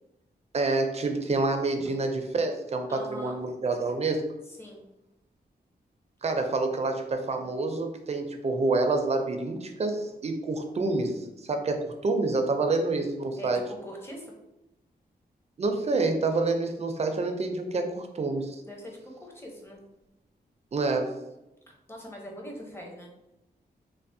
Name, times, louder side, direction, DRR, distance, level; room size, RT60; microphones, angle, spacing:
voice 1, 0.5-4.2 6.2-13.6 15.6-18.6 20.7-21.1, right 3 dB, 40° right, 5 dB, 0.4 m, -28 dB
voice 2, 2.9-3.4 4.5-4.8 13.4-14.3 18.7-19.8 21.9-23.1, equal, 15° left, -1 dB, 0.7 m, -42 dB
3.2 x 2.0 x 2.6 m, 0.92 s
wide cardioid pair, 95°, 17 cm